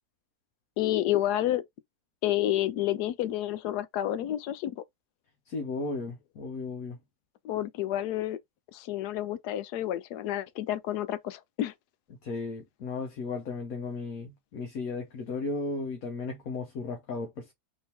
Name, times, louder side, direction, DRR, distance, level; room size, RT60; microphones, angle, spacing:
voice 1, 0.8-1.6 2.2-4.8 7.4-8.4 8.7-11.7, left 13 dB, 85° left, 1.2 m, -29 dB
voice 2, 5.5-7.0 12.2-17.5, left 3 dB, 65° left, 1.4 m, -35 dB
3.7 x 3.1 x 4.3 m
omnidirectional pair, 1.7 m